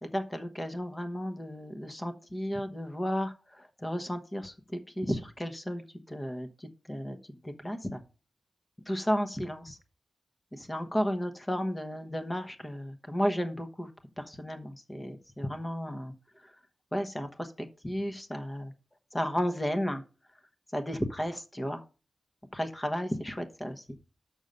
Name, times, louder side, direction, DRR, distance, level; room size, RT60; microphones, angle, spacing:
voice 1, 0.0-8.0 8.9-9.8 10.5-13.9 14.2-16.5 16.9-18.7 19.1-20.0 20.7-21.8 22.5-23.9, equal, 15° left, 7 dB, 1.0 m, -33 dB
6.4 x 6.3 x 5.3 m, 0.34 s
wide cardioid pair, 120°, 0 cm